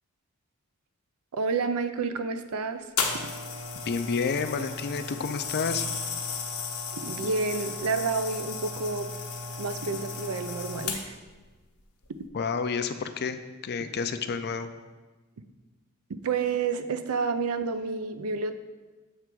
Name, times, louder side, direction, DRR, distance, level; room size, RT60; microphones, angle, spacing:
voice 1, 1.3-2.8 7.0-9.1 9.6-11.2 16.1-18.6, right 4 dB, 80° right, 9 dB, 0.5 m, -29 dB
sound 1, 3.0-11.3 12.0-12.2, left 5 dB, 85° left, 0.9 m, -34 dB
voice 2, 3.9-5.9 12.3-14.7, left 5 dB, 50° left, 9 dB, 0.4 m, -30 dB
7.5 x 3.4 x 6.0 m, 1.2 s
head